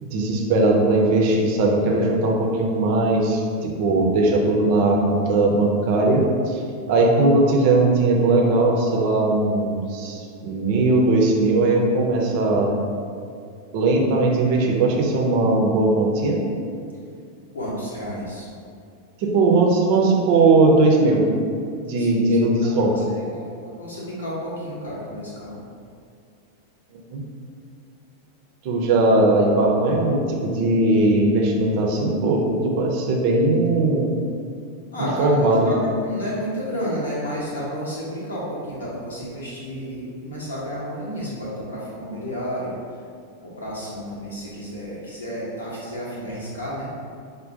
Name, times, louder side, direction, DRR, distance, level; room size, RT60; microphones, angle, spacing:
voice 1, 0.0-6.6 6.9-12.7 13.7-16.4 19.2-21.3 21.8-23.0 26.9-27.2 28.6-34.1 35.2-35.7, right 2 dB, 45° right, -1 dB, 0.6 m, -19 dB
voice 2, 17.5-18.5 22.0-23.0 23.3-23.5 23.8-25.6 34.9-42.7 43.4-46.9, equal, 70° left, -6 dB, 0.7 m, -31 dB
5.0 x 2.1 x 2.6 m, 2.3 s
figure-of-eight pair, 90°, 0 cm